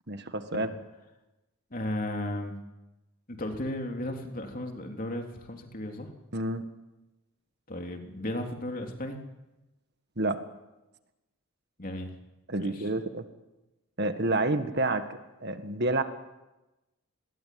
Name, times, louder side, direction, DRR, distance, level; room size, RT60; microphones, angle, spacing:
voice 1, 0.1-0.7 6.3-6.6 10.2-10.4 12.5-13.3 14.0-16.0, right 2 dB, 45° right, 8 dB, 1.8 m, -29 dB
voice 2, 1.7-2.5 3.3-6.1 7.7-9.2 11.8-12.1 12.6-12.9, left 1 dB, 40° left, 3 dB, 3.5 m, -35 dB
28.0 x 21.5 x 9.5 m, 1.0 s
head